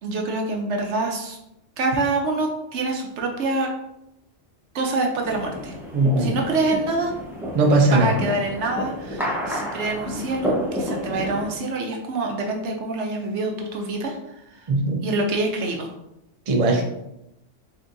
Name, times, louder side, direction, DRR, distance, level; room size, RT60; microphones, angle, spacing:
voice 1, 0.0-1.4 1.8-3.7 4.7-5.8 6.2-7.1 7.9-14.2 14.6-14.7 15.0-15.9, right 2 dB, 75° right, 2 dB, 1.0 m, -26 dB
sound 1, 5.2-11.5, equal, ahead, 0.7 m, -30 dB
voice 2, 5.9-6.3 7.5-8.2 14.7-15.0 16.5-16.8, right 2 dB, 40° right, 2 dB, 0.5 m, -19 dB
4.3 x 3.4 x 2.6 m, 0.85 s
omnidirectional pair, 1.2 m